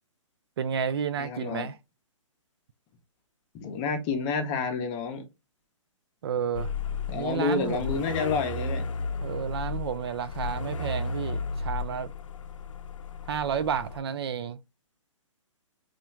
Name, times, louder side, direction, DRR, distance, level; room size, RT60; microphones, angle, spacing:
voice 1, 0.6-1.8 6.2-6.7 7.1-8.0 9.2-12.1 13.3-14.6, right 7 dB, 50° right, 0.4 m, -31 dB
voice 2, 1.2-1.7 3.5-5.2 7.1-8.8, left 4 dB, 25° left, 0.8 m, -29 dB
sound 1, 6.5-14.0, left 4 dB, 70° left, 0.6 m, -34 dB
2.9 x 2.4 x 4.3 m
hypercardioid pair, 140°, 17 cm